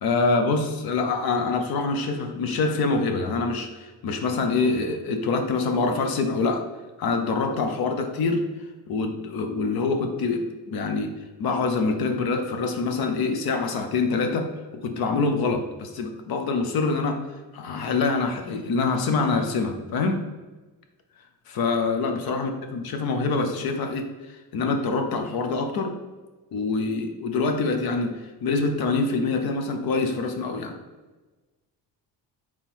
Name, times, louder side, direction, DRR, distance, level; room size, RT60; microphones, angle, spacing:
voice 1, 0.0-6.7 7.0-8.4 8.9-11.1 11.4-14.5 14.8-17.2 17.5-20.2 21.5-25.9 26.5-30.7, left 3 dB, 60° left, 5 dB, 0.7 m, -25 dB
3.6 x 3.0 x 4.4 m, 1.2 s
cardioid pair, 105°, 41 cm